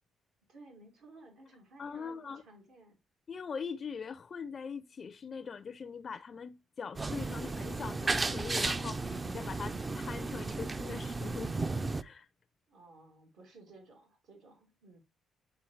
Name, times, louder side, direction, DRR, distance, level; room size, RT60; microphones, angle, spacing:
voice 1, 0.5-3.0 12.7-15.0, right 2 dB, 85° right, 2.4 m, -56 dB
voice 2, 1.8-2.4 3.3-11.6 12.0-12.3, left 6 dB, 45° left, 0.4 m, -42 dB
sound 1, 7.0-12.0, right 3 dB, 25° right, 0.4 m, -34 dB
9.1 x 3.4 x 3.1 m
cardioid pair, 90°, 0 cm